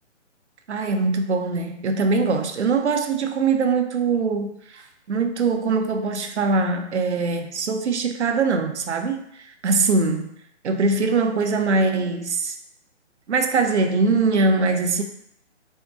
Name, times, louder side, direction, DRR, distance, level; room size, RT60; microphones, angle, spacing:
voice 1, 0.7-10.3 10.6-12.6 13.3-15.0, right 4 dB, 70° right, 6 dB, 0.5 m, -22 dB
3.5 x 2.1 x 2.5 m, 0.73 s
figure-of-eight pair, 140°, 36 cm